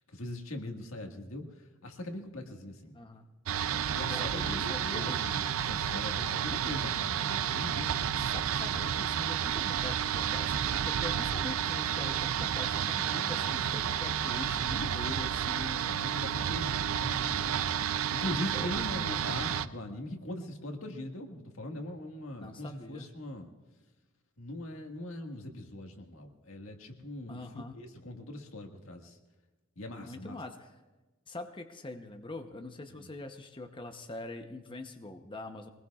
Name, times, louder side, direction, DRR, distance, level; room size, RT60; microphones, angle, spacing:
voice 1, 0.1-1.5 1.8-2.9 3.9-8.3 13.2-13.7 14.5-14.9 15.9-17.6 18.1-23.5 24.4-27.4 27.7-29.2 29.8-30.4 33.0-33.1, left 1 dB, 90° left, 3 dB, 1.7 m, -41 dB
voice 2, 2.9-3.3 4.1-5.2 8.2-16.0 18.5-18.7 22.3-23.1 27.3-27.7 30.0-30.7 31.3-35.7, left 2 dB, 25° left, 5 dB, 0.8 m, -43 dB
sound 1, 3.5-19.7, right 9 dB, 80° right, 0.5 m, -31 dB
23.5 x 19.5 x 2.4 m, 1.2 s
head